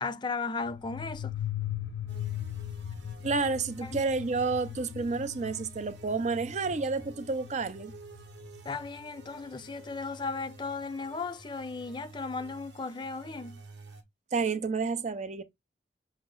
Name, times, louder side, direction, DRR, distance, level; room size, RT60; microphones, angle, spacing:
voice 1, 0.0-1.3 3.8-4.0 8.6-13.6, left 4 dB, 25° left, 0.4 m, -36 dB
sound 1, 0.6-9.0, left 10 dB, 90° left, 0.4 m, -39 dB
sound 2, 2.1-14.0, right 3 dB, 85° right, 1.0 m, -51 dB
voice 2, 3.2-7.9 14.3-15.4, right 4 dB, 40° right, 0.5 m, -30 dB
5.8 x 2.0 x 3.7 m
head